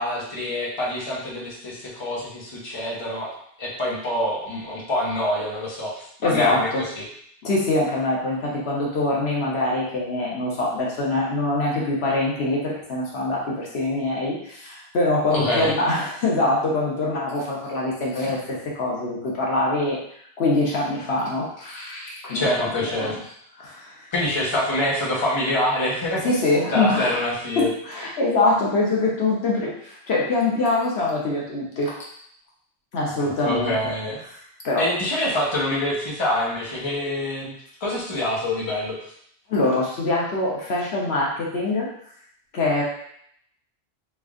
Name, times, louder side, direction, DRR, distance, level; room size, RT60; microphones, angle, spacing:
voice 1, 0.0-3.3 3.6-7.0 15.3-15.7 22.3-23.2 24.1-26.3 26.7-27.7 33.2-34.2 34.8-37.5 37.8-39.0, left 1 dB, 30° left, -5 dB, 0.9 m, -26 dB
voice 2, 6.2-6.8 7.4-20.0 20.4-23.1 23.6-23.9 26.2-27.2 27.6-32.0 32.9-33.7 34.6-34.8 39.5-41.9 42.5-42.8, left 2 dB, 75° left, -4 dB, 1.1 m, -24 dB
3.3 x 2.5 x 3.6 m, 0.68 s
omnidirectional pair, 1.1 m